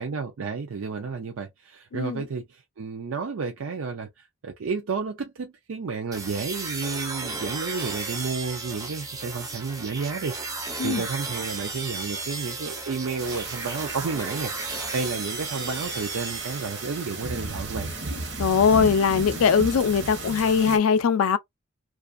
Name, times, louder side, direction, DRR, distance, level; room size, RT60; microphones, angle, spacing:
voice 1, 0.0-17.9, right 4 dB, 75° right, 0.5 m, -32 dB
voice 2, 1.9-2.2 10.8-11.0 18.4-21.4, left 6 dB, 85° left, 0.4 m, -21 dB
sound 1, 6.1-17.3, right 3 dB, 15° right, 0.4 m, -34 dB
sound 2, 13.2-20.8, right 3 dB, 55° right, 0.9 m, -35 dB
2.4 x 2.4 x 2.4 m
head